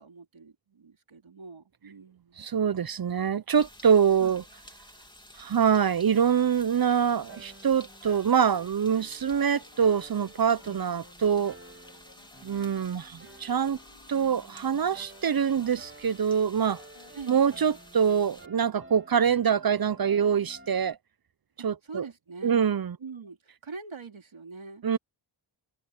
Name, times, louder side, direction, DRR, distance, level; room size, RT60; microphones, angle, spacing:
voice 1, 0.0-2.4 4.2-4.4 17.1-17.5 21.6-22.7 23.0-24.8, right 4 dB, 75° right, 3.3 m, -44 dB
voice 2, 2.4-4.4 5.4-11.6 12.4-13.8 14.1-16.8 17.3-21.0 21.6-22.0 22.4-23.0 24.8-25.0, right 7 dB, 50° right, 0.7 m, -25 dB
sound 1, 3.5-18.5, left 1 dB, 10° left, 2.8 m, -52 dB
sound 2, 6.1-6.2 7.1-8.2 9.3-15.7 16.6-17.1, left 5 dB, 70° left, 3.9 m, -57 dB
sound 3, 7.3-20.9, right 2 dB, 25° right, 2.8 m, -52 dB
cardioid pair, 40°, 48 cm